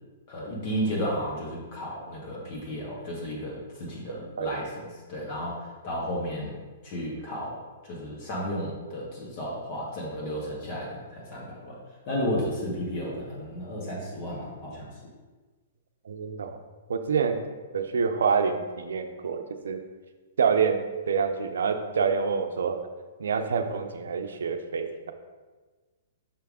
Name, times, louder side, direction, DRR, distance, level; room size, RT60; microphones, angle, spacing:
voice 1, 0.3-11.8 12.1-14.9, equal, 45° left, -4 dB, 1.6 m, -33 dB
voice 2, 16.1-16.6 16.9-17.4 17.7-19.8 20.4-22.8 23.2-25.1, right 6 dB, 80° right, 7 dB, 0.6 m, -27 dB
5.8 x 3.5 x 4.8 m, 1.3 s
hypercardioid pair, 130°, 0 cm